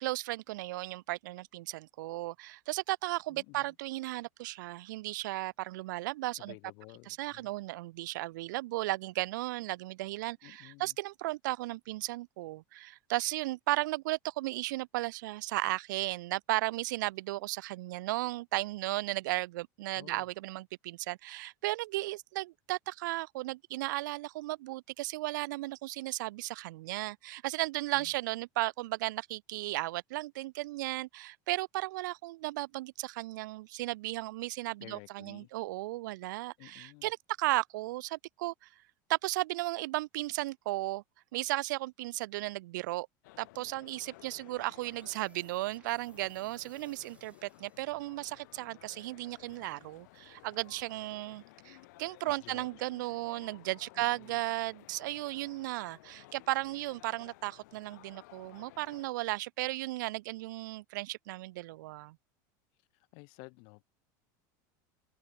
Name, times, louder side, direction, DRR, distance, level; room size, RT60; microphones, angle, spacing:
voice 1, 0.0-6.5 7.1-38.7 39.1-41.0 41.3-43.1 43.4-62.2, right 19 dB, 90° right, 0.4 m, -35 dB
voice 2, 3.3-3.7 6.4-7.5 10.4-11.0 19.9-20.3 27.9-28.1 34.8-35.5 36.6-37.1 52.2-52.9 53.9-54.4 62.9-63.8, left 34 dB, 50° left, 3.1 m, -53 dB
sound 1, 43.2-59.1, left 21 dB, 70° left, 1.8 m, -57 dB
sound 2, 44.1-48.4, right 5 dB, 10° right, 4.8 m, -66 dB
supercardioid pair, 170°, 10 cm